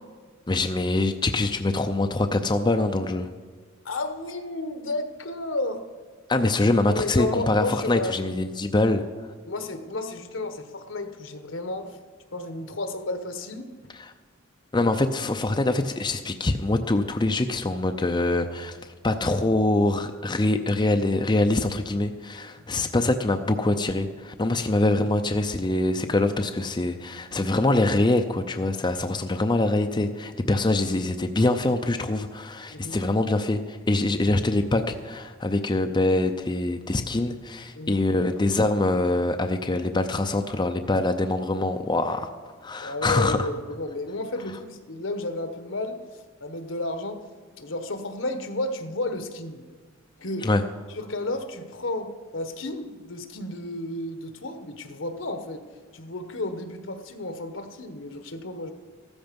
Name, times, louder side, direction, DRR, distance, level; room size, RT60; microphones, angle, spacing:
voice 1, 0.5-3.3 6.3-9.0 14.0-14.1 14.7-18.8 19.0-42.3 42.6-43.5 50.4-50.6, left 2 dB, 25° left, 6 dB, 0.5 m, -24 dB
voice 2, 3.8-5.8 6.8-8.1 9.4-11.9 12.3-13.7 22.7-22.9 32.7-33.0 37.7-38.1 42.8-46.0 46.4-47.2 47.6-49.7 50.2-50.5 50.9-55.6 55.9-58.7, left 2 dB, 70° left, 8 dB, 1.3 m, -32 dB
14.5 x 13.5 x 5.3 m, 1.4 s
head